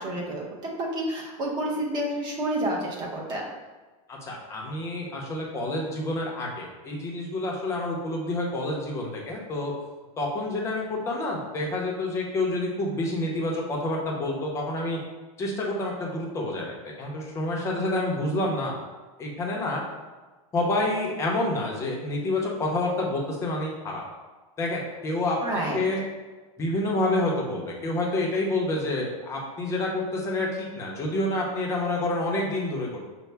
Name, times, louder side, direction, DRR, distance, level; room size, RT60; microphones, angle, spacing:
voice 1, 0.0-3.4 25.4-25.8, right 1 dB, 25° right, -2 dB, 0.7 m, -29 dB
voice 2, 4.1-9.7 10.2-15.0 15.4-16.7 17.0-18.7 19.2-19.8 20.5-24.0 24.6-25.4 25.7-26.0 26.6-33.1, left 2 dB, 15° left, -2 dB, 0.6 m, -28 dB
5.5 x 2.0 x 3.3 m, 1.2 s
supercardioid pair, 165°, 19 cm